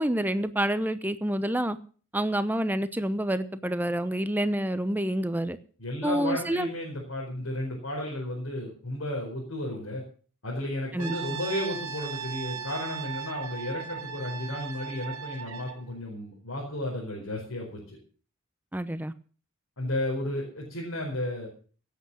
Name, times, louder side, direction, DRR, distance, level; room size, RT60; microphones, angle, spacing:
voice 1, 0.0-1.8 2.1-5.6 6.0-6.7 10.9-11.4 18.7-19.1, right 1 dB, 10° right, 12 dB, 0.8 m, -28 dB
voice 2, 5.8-10.0 10.4-18.0 19.8-21.5, left 1 dB, 70° left, -3 dB, 4.8 m, -33 dB
Brass instrument, 11.0-15.8, right 7 dB, 85° right, 2.0 m, -37 dB
17.5 x 8.3 x 6.2 m, 0.41 s
head